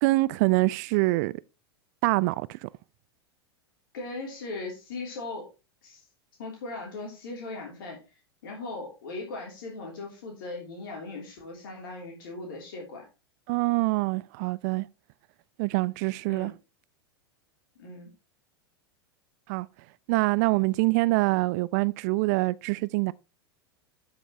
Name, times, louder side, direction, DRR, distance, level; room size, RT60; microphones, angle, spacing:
voice 1, 0.0-1.3 2.0-2.7 13.5-14.9 15.6-16.5 19.5-19.7 20.1-23.1, right 22 dB, 45° right, 0.4 m, -25 dB
voice 2, 3.9-5.5 5.8-6.0 6.4-8.0 8.4-13.0 16.3-16.5 17.8-18.1, left 3 dB, 55° left, 3.4 m, -38 dB
12.0 x 5.9 x 3.1 m
figure-of-eight pair, 90°, 13 cm